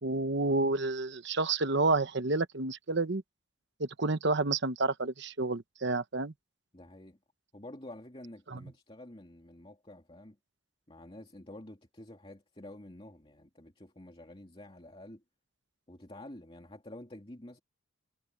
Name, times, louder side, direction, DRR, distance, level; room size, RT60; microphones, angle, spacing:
voice 1, 0.0-3.2 3.8-6.3 8.5-8.6, right 3 dB, 60° right, 1.1 m, -29 dB
voice 2, 6.7-7.2 7.5-10.4 10.9-15.2 15.9-17.6, left 1 dB, 25° left, 2.5 m, -49 dB
head